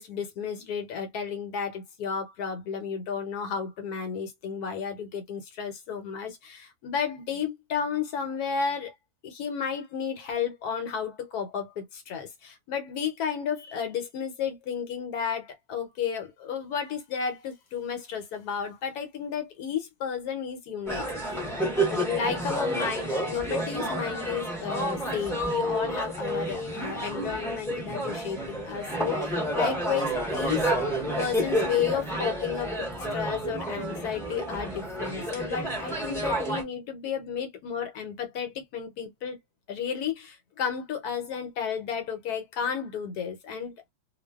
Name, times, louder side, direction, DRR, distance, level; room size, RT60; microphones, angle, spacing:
voice 1, 0.0-8.9 9.2-21.4 21.9-30.7 31.2-39.4 39.7-43.7, left 7 dB, 75° left, 1.1 m, -32 dB
sound 1, 20.9-36.6, right 1 dB, 5° left, 0.5 m, -30 dB
2.5 x 2.3 x 2.2 m
omnidirectional pair, 1.7 m